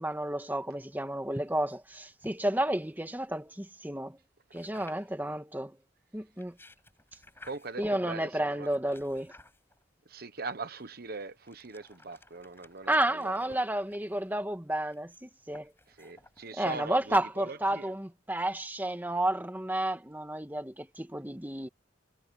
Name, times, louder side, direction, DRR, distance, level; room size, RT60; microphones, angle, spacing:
voice 1, 0.0-4.2 4.5-5.8 6.1-6.5 7.8-9.3 12.9-15.7 16.5-21.7, right 1 dB, 10° right, 1.7 m, -31 dB
sound 1, 1.3-3.5 4.5-5.3 6.2-7.9 8.6-10.0 10.8-17.2, left 1 dB, 10° left, 7.9 m, -55 dB
voice 2, 7.4-8.7 10.1-13.6 16.0-17.9, right 4 dB, 50° right, 1.1 m, -41 dB
head